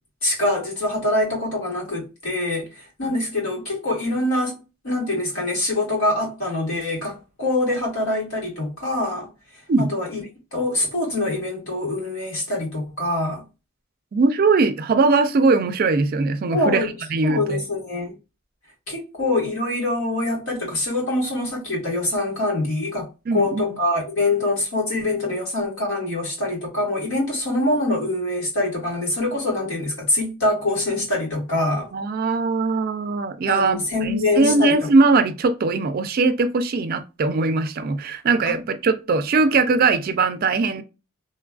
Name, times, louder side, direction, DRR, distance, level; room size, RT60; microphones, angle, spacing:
voice 1, 0.2-4.6 4.8-9.3 9.8-10.2 10.5-13.4 16.5-16.9 17.2-18.1 18.9-31.9 33.5-34.7, left 2 dB, 75° left, 1.6 m, -24 dB
voice 2, 14.1-17.6 23.3-23.7 31.9-40.8, right 3 dB, 45° right, 0.4 m, -20 dB
3.1 x 2.3 x 2.3 m
head